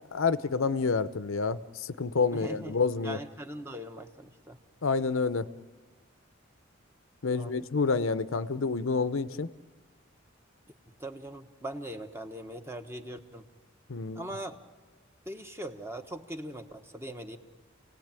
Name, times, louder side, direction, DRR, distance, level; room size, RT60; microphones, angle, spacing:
voice 1, 0.0-3.2 4.8-5.5 7.2-9.5 13.9-14.2, left 4 dB, 75° left, 14 dB, 0.7 m, -28 dB
voice 2, 2.3-2.8 3.0-4.6 7.3-7.7 11.0-13.4 14.1-14.6 15.3-17.4, right 1 dB, 10° right, 6 dB, 1.2 m, -40 dB
29.0 x 18.5 x 9.0 m, 1.3 s
head